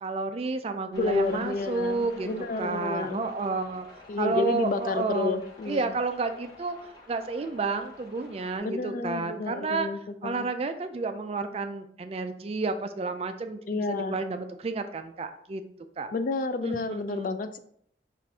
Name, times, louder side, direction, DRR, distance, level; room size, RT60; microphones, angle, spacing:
voice 1, 0.0-3.9 4.2-5.4 5.7-9.9 10.2-15.6 16.0-16.1 16.6-17.3, right 3 dB, 35° right, 8 dB, 0.3 m, -31 dB
voice 2, 0.9-3.3 4.1-5.9 8.6-10.5 13.7-14.2 16.1-17.6, left 3 dB, 50° left, 10 dB, 0.3 m, -30 dB
sound 1, 0.9-8.6, left 2 dB, 25° left, 0.8 m, -50 dB
5.6 x 2.5 x 3.4 m, 0.67 s
head